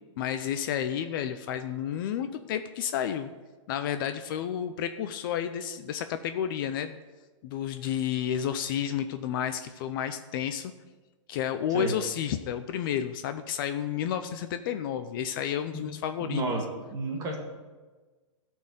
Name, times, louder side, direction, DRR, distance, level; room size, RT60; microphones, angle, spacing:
voice 1, 0.2-3.3 3.7-7.0 7.4-10.7 11.3-16.4, left 9 dB, 45° left, 9 dB, 0.6 m, -31 dB
voice 2, 16.2-16.7 16.9-17.4, right 2 dB, 20° right, 0 dB, 1.9 m, -30 dB
13.0 x 4.5 x 7.5 m, 1.3 s
hypercardioid pair, 150°, 16 cm